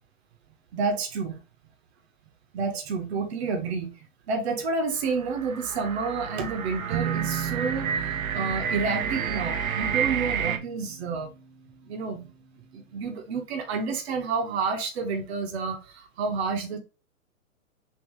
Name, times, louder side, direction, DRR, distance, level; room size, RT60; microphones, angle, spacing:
voice 1, 0.7-1.4 2.5-3.9 4.3-11.3 11.8-12.3 12.7-16.8, right 4 dB, 50° right, 1.0 m, -29 dB
sound 1, 5.0-10.6, right 7 dB, 75° right, 0.7 m, -30 dB
sound 2, 6.9-12.5, right 8 dB, 25° right, 0.7 m, -36 dB
3.6 x 2.9 x 3.1 m
figure-of-eight pair, 115°, 42 cm